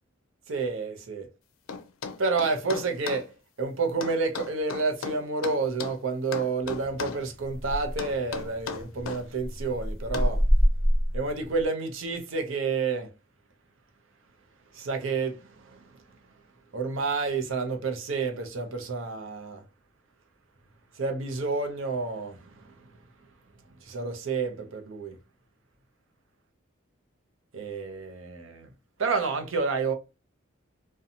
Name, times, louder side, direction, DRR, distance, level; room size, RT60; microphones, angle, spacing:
voice 1, 0.5-1.3 2.2-10.4 11.1-13.1 14.7-16.0 16.7-19.6 21.0-22.7 23.8-25.2 27.5-28.7 29.0-29.9, right 4 dB, 75° right, 0.6 m, -30 dB
sound 1, 1.7-3.3 4.0-6.0 6.3-7.2 8.0-9.2 10.1-10.4, left 5 dB, 90° left, 0.4 m, -36 dB
sound 2, 6.6-11.7, equal, 5° right, 0.7 m, -28 dB
2.6 x 2.2 x 2.7 m
head